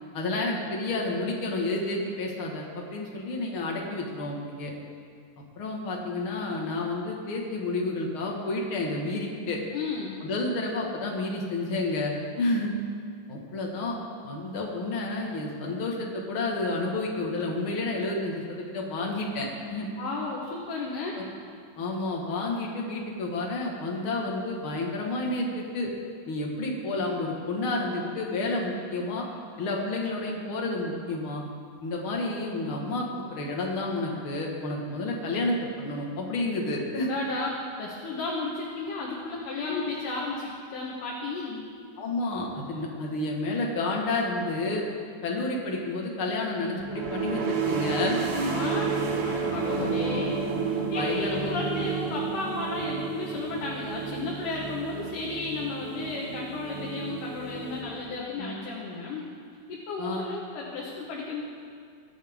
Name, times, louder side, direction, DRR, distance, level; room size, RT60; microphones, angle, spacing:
voice 1, 0.1-4.7 5.6-9.6 10.2-12.7 13.3-14.0 14.2-19.9 21.2-21.3 21.8-25.9 26.3-29.2 29.6-31.4 31.8-37.1 39.7-39.8 42.0-44.8 45.2-48.5 49.7-50.2 50.9-51.5 58.4-58.6 60.0-60.3, left 2 dB, 45° left, -1 dB, 2.1 m, -30 dB
voice 2, 9.7-10.2 19.7-21.1 37.0-37.5 37.8-41.6 48.4-50.3 50.6-59.3 59.7-61.4, left 3 dB, 70° left, -4 dB, 2.8 m, -34 dB
sound 1, 46.8-58.4, right 5 dB, 75° right, 1.2 m, -31 dB
22.5 x 9.4 x 3.7 m, 2.2 s
omnidirectional pair, 4.1 m